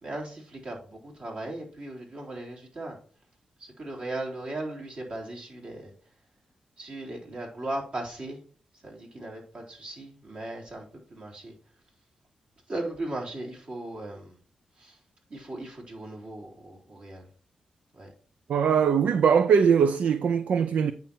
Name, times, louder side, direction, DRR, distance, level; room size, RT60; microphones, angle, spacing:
voice 1, 0.0-3.0 3.8-5.9 6.8-8.4 8.8-11.5 12.7-14.4 14.8-15.0 15.3-17.3 17.9-18.1, right 2 dB, 55° right, 3.9 m, -37 dB
voice 2, 18.5-20.9, right 7 dB, 75° right, 0.5 m, -21 dB
8.9 x 5.5 x 4.4 m
cardioid pair, 55°, 2 cm